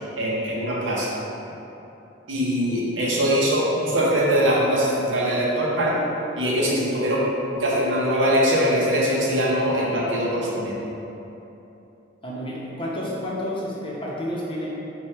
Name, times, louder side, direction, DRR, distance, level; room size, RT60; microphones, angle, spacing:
voice 1, 0.2-1.1 2.3-6.0 6.4-7.2 7.5-10.8, equal, 65° right, -5 dB, 0.7 m, -22 dB
voice 2, 12.2-14.7, equal, 25° left, -6 dB, 0.7 m, -30 dB
4.5 x 2.2 x 4.4 m, 2.9 s
head